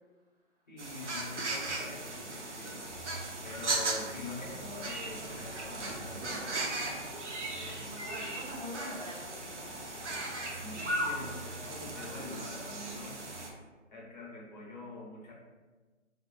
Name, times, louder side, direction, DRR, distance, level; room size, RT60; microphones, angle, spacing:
voice 1, 0.7-3.2 3.4-6.8 7.5-8.4 10.4-13.5 13.9-15.3, left 2 dB, 40° left, -3 dB, 0.8 m, -45 dB
sound 1, 0.8-13.5, right 2 dB, 70° right, 0.8 m, -37 dB
voice 2, 7.8-9.8, equal, 30° right, -6 dB, 0.8 m, -44 dB
3.8 x 2.5 x 2.2 m, 1.3 s
figure-of-eight pair, 155°, 37 cm